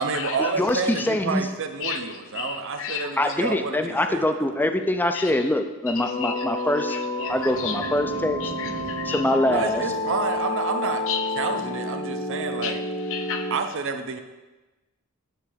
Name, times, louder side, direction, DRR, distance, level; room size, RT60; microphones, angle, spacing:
voice 1, 0.0-4.5 9.5-11.1 11.3-12.8 13.5-14.2, right 4 dB, 60° right, 7 dB, 0.6 m, -29 dB
voice 2, 0.6-1.5 3.2-7.0 7.3-8.4 9.0-9.8, left 1 dB, 10° left, 7 dB, 0.4 m, -24 dB
voice 3, 2.4-3.1 5.1-5.3 6.0-6.4 7.2-7.3 7.6-7.8 8.4-9.2 11.1-11.2 12.6-12.7 13.1-13.5, left 8 dB, 60° left, 7 dB, 0.5 m, -32 dB
sound 1, 6.0-13.6, left 2 dB, 80° left, 2.0 m, -30 dB
Boom, 7.3-10.5, equal, 80° right, 1.5 m, -40 dB
8.0 x 3.3 x 6.3 m, 1.1 s
head